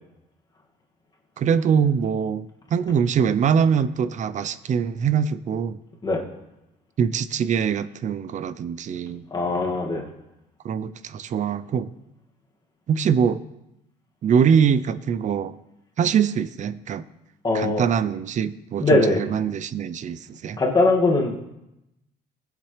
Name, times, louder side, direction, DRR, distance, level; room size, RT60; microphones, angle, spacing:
voice 1, 1.4-5.8 7.0-9.6 10.6-11.9 12.9-13.4 14.2-15.6 16.0-17.1 17.5-20.6, right 7 dB, 45° right, 15 dB, 0.7 m, -23 dB
voice 2, 9.3-10.0 17.4-17.8 18.8-19.2 20.6-21.5, left 2 dB, 25° left, -1 dB, 2.2 m, -20 dB
21.0 x 7.4 x 3.4 m, 0.91 s
cardioid pair, 110°, 17 cm